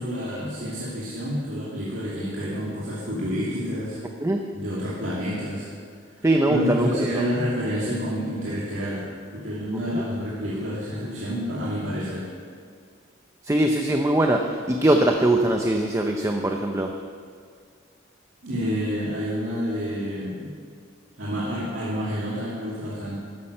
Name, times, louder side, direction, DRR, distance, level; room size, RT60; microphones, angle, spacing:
voice 1, 0.0-4.0 4.5-5.7 6.2-12.3 18.4-20.5 21.2-23.2, equal, 70° right, -8 dB, 2.5 m, -29 dB
voice 2, 6.2-7.3 13.4-16.9, right 1 dB, 15° right, 3 dB, 0.6 m, -21 dB
13.0 x 10.0 x 6.6 m, 2.1 s
head